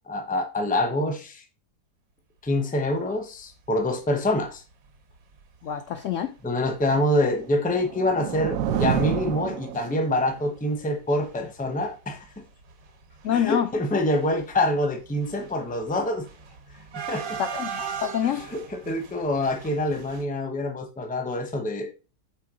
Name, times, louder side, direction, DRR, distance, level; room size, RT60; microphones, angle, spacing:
voice 1, 0.1-1.4 2.4-4.6 6.4-12.2 13.3-16.2 17.0-17.4 18.2-21.9, left 1 dB, 10° left, 0.5 m, -26 dB
sound 1, 4.2-4.5 4.9-5.0 5.2-5.4 6.2-6.3 6.7-6.9 7.2-7.3 7.7-9.9 10.1-10.8 11.1-20.2, right 7 dB, 85° right, 1.8 m, -39 dB
voice 2, 5.6-6.3 13.2-13.7 17.4-18.4, left 9 dB, 75° left, 0.7 m, -26 dB
sound 2, 7.4-10.3, right 10 dB, 70° right, 0.8 m, -29 dB
5.7 x 3.5 x 4.9 m
omnidirectional pair, 1.9 m